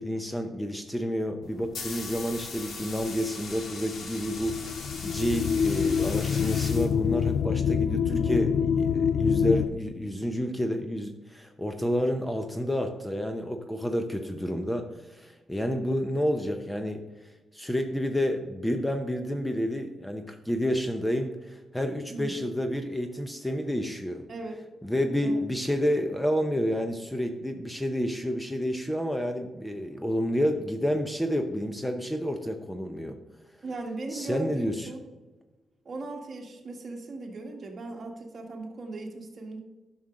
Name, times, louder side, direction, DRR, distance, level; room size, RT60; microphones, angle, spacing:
voice 1, 0.0-17.0 17.5-24.2 24.8-33.2 34.1-34.9, equal, 5° left, 6 dB, 0.7 m, -29 dB
sound 1, 1.4-7.4, left 4 dB, 65° left, 1.5 m, -40 dB
sound 2, 4.3-9.7, left 7 dB, 85° left, 0.3 m, -26 dB
voice 2, 8.1-8.4 22.1-22.5 24.3-24.7 25.2-25.5 33.6-35.0 35.8-39.6, right 3 dB, 45° right, 2 dB, 1.7 m, -38 dB
11.0 x 6.2 x 3.8 m, 1.2 s
cardioid pair, 120°, 0 cm